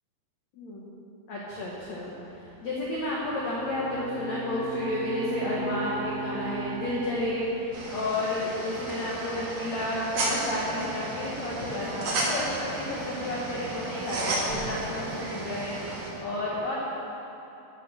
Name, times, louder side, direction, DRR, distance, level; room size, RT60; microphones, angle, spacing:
voice 1, 0.5-0.9 1.3-2.1 2.6-16.8, left 1 dB, 85° left, -5 dB, 1.5 m, -31 dB
sound 1, 1.7-16.2, right 5 dB, 80° right, 3.0 m, -46 dB
Bowed string instrument, 3.0-8.4, right 3 dB, 40° right, 2.8 m, -39 dB
sound 2, 7.7-16.1, right 2 dB, 55° right, 2.2 m, -34 dB
13.0 x 6.3 x 6.2 m, 3.0 s
omnidirectional pair, 5.2 m